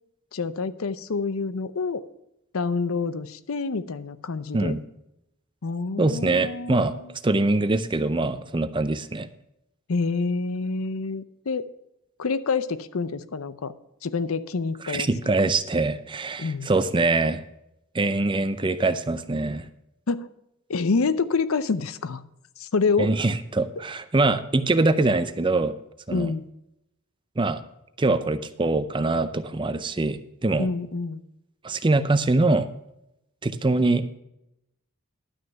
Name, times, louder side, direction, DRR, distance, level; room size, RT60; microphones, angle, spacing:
voice 1, 0.3-2.0 2.5-4.8 5.6-7.1 9.9-11.7 12.2-13.7 14.0-15.1 16.4-16.7 20.1-20.3 20.7-22.2 22.6-23.1 26.1-26.5 30.6-31.2, left 4 dB, 85° left, 14 dB, 0.6 m, -27 dB
voice 2, 6.0-9.3 14.8-17.4 17.9-19.7 23.0-25.7 26.1-26.3 27.4-27.6 28.0-30.7 31.6-32.7 33.4-34.1, right 2 dB, 25° right, 12 dB, 0.5 m, -23 dB
11.5 x 6.3 x 5.7 m, 0.84 s
head